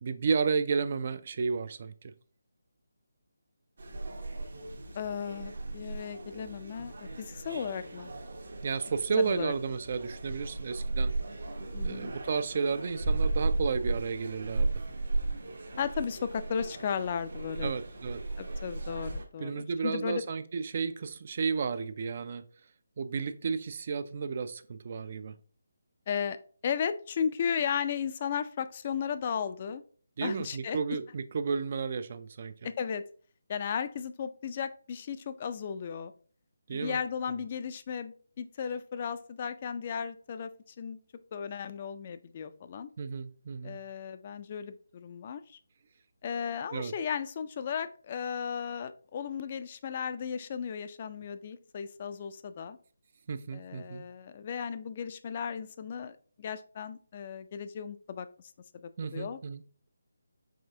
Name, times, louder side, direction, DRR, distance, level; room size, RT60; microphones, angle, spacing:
voice 1, 0.0-2.1 8.6-11.1 11.8-14.8 17.6-18.2 19.4-22.4 23.0-25.3 30.2-32.5 36.7-37.0 43.0-43.8 46.7-46.9 53.3-54.0 59.0-59.6, right 5 dB, 45° right, 12 dB, 0.3 m, -32 dB
sound 1, 3.8-19.2, right 2 dB, 65° right, 1.0 m, -35 dB
voice 2, 4.9-8.1 9.2-9.5 11.7-12.1 15.8-17.7 18.4-20.2 26.1-26.4 26.6-29.8 30.2-30.8 32.6-33.0 33.5-36.1 36.7-40.5 40.8-41.0 41.3-42.9 43.6-45.6 46.2-52.8 53.5-58.3 58.7-59.4, left 7 dB, 35° left, 11 dB, 0.3 m, -35 dB
4.8 x 3.5 x 2.7 m, 0.42 s
figure-of-eight pair, 155°, 0 cm